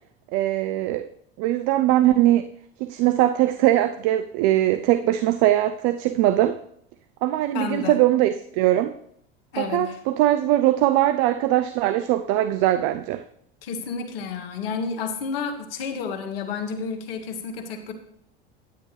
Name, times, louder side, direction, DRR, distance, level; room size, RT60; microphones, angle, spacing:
voice 1, 0.3-1.1 1.4-2.5 2.8-6.6 7.2-9.0 9.6-13.2, right 14 dB, 55° right, 0.6 m, -21 dB
voice 2, 7.5-8.0 9.5-10.0 13.6-17.9, left 5 dB, 75° left, 1.4 m, -31 dB
9.5 x 9.2 x 3.3 m
hypercardioid pair, 80°, 30 cm